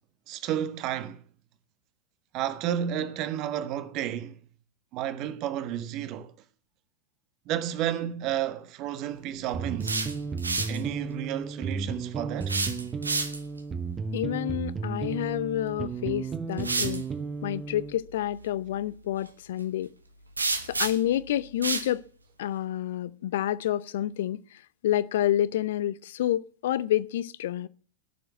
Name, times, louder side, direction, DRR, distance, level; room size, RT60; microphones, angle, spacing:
voice 1, 0.3-1.2 2.3-4.3 4.9-6.3 7.5-10.1 10.7-12.6, right 10 dB, 40° right, 1.3 m, -31 dB
sound 1, 9.5-18.0, right 4 dB, 20° right, 1.1 m, -34 dB
sound 2, 9.6-10.8 12.4-13.6 15.7-15.8 16.6-17.0 20.4-21.2 21.6-21.9, right 3 dB, 80° right, 1.2 m, -30 dB
voice 2, 14.1-17.1 17.4-19.9 20.7-22.0 22.4-27.7, left 12 dB, 55° left, 0.6 m, -29 dB
18.0 x 7.0 x 8.1 m
figure-of-eight pair, 90°, 0 cm